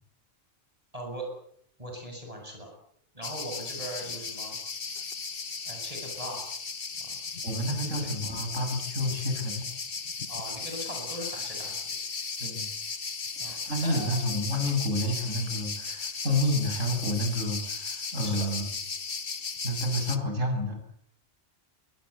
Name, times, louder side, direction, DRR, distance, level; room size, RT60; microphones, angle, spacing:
voice 1, 0.9-1.3 1.8-2.7 3.1-4.5 5.7-6.5 7.0-7.1 7.9-8.1 10.3-11.9 13.4-13.5 13.8-14.4 18.2-18.5, right 1 dB, 30° right, 1 dB, 7.6 m, -40 dB
sound 1, 3.2-20.2, left 5 dB, 50° left, 1.6 m, -36 dB
voice 2, 7.4-9.7 12.4-12.7 13.4-18.6 19.6-20.8, left 1 dB, 85° right, 4 dB, 7.8 m, -29 dB
22.5 x 20.5 x 8.3 m, 0.66 s
omnidirectional pair, 1.3 m